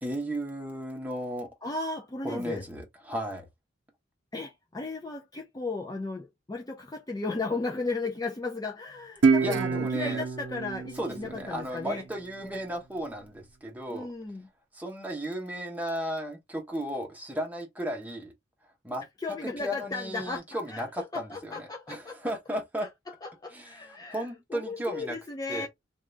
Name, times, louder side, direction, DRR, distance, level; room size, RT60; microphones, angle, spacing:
voice 1, 0.0-1.5 2.2-3.5 9.4-10.3 10.9-14.1 14.7-18.3 18.8-19.0 19.4-22.9 23.5-25.2 25.5-25.7, equal, 10° right, 0.9 m, -35 dB
voice 2, 1.6-2.6 4.3-12.0 13.9-14.5 19.2-20.8 21.1-22.3 22.8-22.9 23.2-25.7, left 3 dB, 20° left, 0.4 m, -35 dB
Guitar, 9.2-12.4, right 4 dB, 70° right, 0.6 m, -27 dB
2.7 x 2.4 x 3.2 m
head